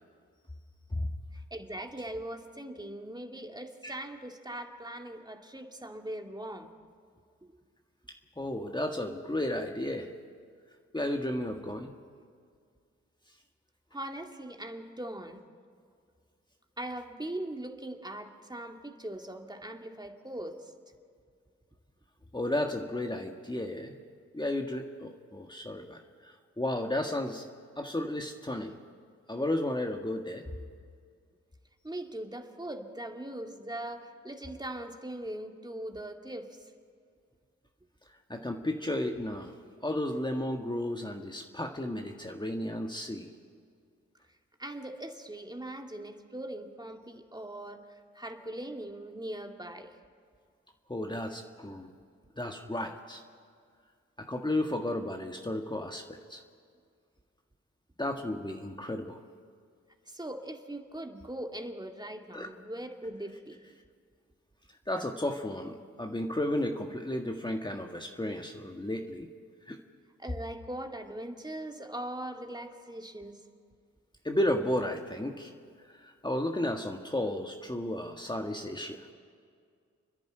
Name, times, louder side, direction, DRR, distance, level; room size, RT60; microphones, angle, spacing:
voice 1, 1.5-6.7 13.9-15.4 16.8-20.7 31.8-36.5 44.6-47.8 48.1-49.9 60.1-63.6 70.2-73.4, right 1 dB, 15° right, 4 dB, 2.1 m, -40 dB
voice 2, 8.4-10.1 10.9-11.9 22.3-23.9 24.3-27.4 27.8-28.7 29.3-30.4 38.3-39.5 39.8-43.3 50.9-51.9 52.4-53.2 54.2-56.4 58.0-59.2 62.3-62.5 64.9-69.3 69.7-69.8 74.2-75.5 75.9-79.1, left 1 dB, 15° left, 3 dB, 1.7 m, -33 dB
30.0 x 10.5 x 9.0 m, 2.1 s
supercardioid pair, 45°, 30 cm